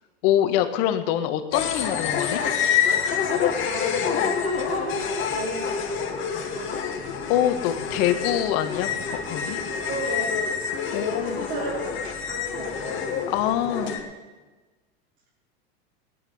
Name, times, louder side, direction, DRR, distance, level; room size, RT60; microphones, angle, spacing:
voice 1, 0.2-2.4 7.3-8.9 9.3-9.6 10.9-11.4 13.3-14.0, left 11 dB, 55° left, 9 dB, 1.6 m, -24 dB
sound 1, 1.5-14.0, left 7 dB, 40° left, 2.5 m, -27 dB
voice 2, 3.6-6.2 6.5-6.8 9.9-10.6 10.9-13.2 13.6-14.0, right 3 dB, 70° right, -6 dB, 3.9 m, -35 dB
17.5 x 10.5 x 5.7 m, 1.2 s
hypercardioid pair, 100°, 32 cm